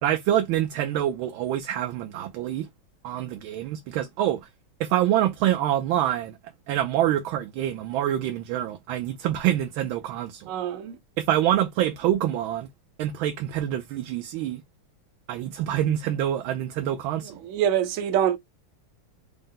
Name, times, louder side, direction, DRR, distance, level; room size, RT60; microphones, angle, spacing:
voice 1, 0.0-2.7 3.0-4.5 4.8-6.4 6.7-10.5 11.2-12.7 13.0-14.6 15.3-17.4, right 12 dB, 90° right, 1.4 m, -26 dB
voice 2, 10.5-11.0 17.2-18.4, right 10 dB, 70° right, 0.8 m, -25 dB
4.3 x 2.1 x 3.7 m
omnidirectional pair, 2.1 m